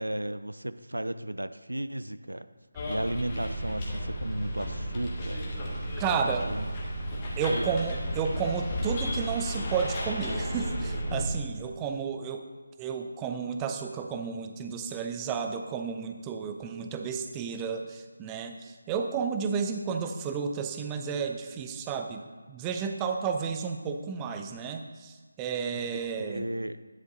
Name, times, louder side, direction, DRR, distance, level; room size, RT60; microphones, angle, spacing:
voice 1, 0.0-2.5 2.9-5.4 6.4-6.7 7.5-7.7 25.7-25.8 26.2-26.8, right 1 dB, 80° right, 12 dB, 0.4 m, -34 dB
Bus, 2.8-11.2, equal, 25° left, 1.3 m, -33 dB
voice 2, 6.0-6.5 7.4-12.5 12.8-26.5, right 6 dB, 15° right, 5 dB, 0.4 m, -32 dB
10.5 x 6.8 x 3.8 m, 1.4 s
figure-of-eight pair, 155°, 0 cm